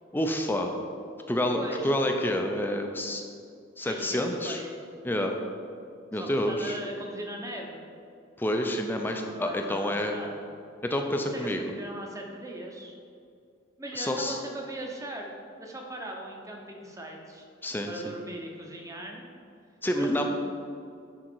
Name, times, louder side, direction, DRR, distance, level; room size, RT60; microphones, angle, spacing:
voice 1, 0.1-0.7 1.3-3.2 3.8-4.6 5.0-5.4 6.1-6.8 8.4-10.2 10.8-11.7 14.0-14.4 17.6-17.9 19.8-20.3, left 1 dB, 10° left, 3 dB, 0.5 m, -28 dB
voice 2, 1.5-2.1 3.8-4.8 6.1-7.8 9.0-10.5 11.3-13.0 13.8-17.4 17.9-19.2 20.0-20.3, right 1 dB, 15° right, 0 dB, 0.9 m, -39 dB
10.0 x 3.8 x 4.5 m, 2.3 s
head